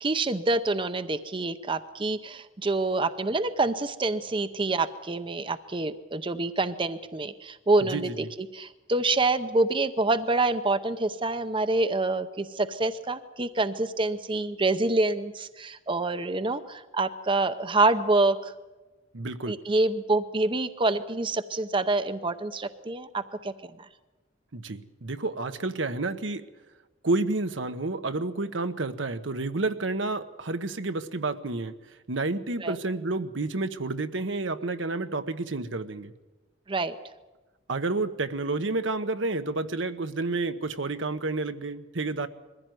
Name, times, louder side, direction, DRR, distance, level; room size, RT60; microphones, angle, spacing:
voice 1, 0.0-8.2 8.5-18.5 19.5-23.5 32.6-32.8 36.7-37.0, right 2 dB, 25° right, 11 dB, 0.7 m, -26 dB
voice 2, 7.8-8.3 19.1-19.6 24.5-26.4 27.0-31.7 32.1-36.1 37.7-42.3, right 3 dB, 75° right, 9 dB, 1.1 m, -30 dB
22.0 x 15.5 x 9.3 m, 1.2 s
head